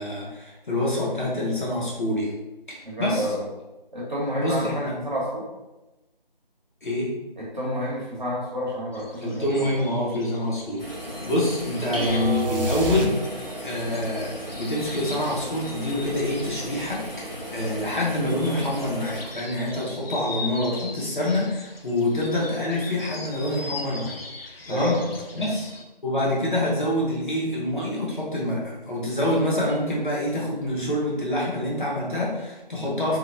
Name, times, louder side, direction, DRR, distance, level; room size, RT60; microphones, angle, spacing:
voice 1, 0.0-2.3 2.7-3.3 4.4-5.0 6.8-7.1 9.2-10.8 11.2-25.0 25.3-25.7 26.0-33.2, left 1 dB, 55° left, -5 dB, 0.9 m, -26 dB
voice 2, 2.8-3.5 3.9-5.5 7.4-9.7 24.7-25.5, equal, 50° right, -4 dB, 0.9 m, -29 dB
sound 1, 8.9-25.8, left 3 dB, 85° left, 0.5 m, -41 dB
sound 2, 10.8-19.2, equal, 20° left, 0.8 m, -36 dB
sound 3, 11.9-13.7, right 2 dB, 70° right, 0.5 m, -27 dB
2.9 x 2.1 x 2.5 m, 1.0 s
figure-of-eight pair, 165°, 29 cm